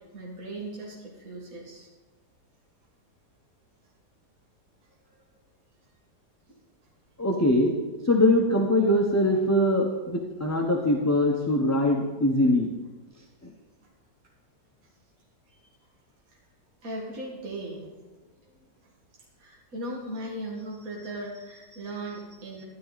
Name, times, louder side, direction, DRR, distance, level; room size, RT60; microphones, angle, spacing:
voice 1, 0.1-1.9 6.5-6.6 15.5-15.6 16.8-18.0 18.5-18.6 19.4-22.6, right 1 dB, 55° right, -3 dB, 2.4 m, -38 dB
voice 2, 7.2-7.7 8.0-12.7, left 1 dB, 15° left, 0 dB, 0.8 m, -22 dB
12.5 x 11.5 x 4.1 m, 1.2 s
omnidirectional pair, 1.7 m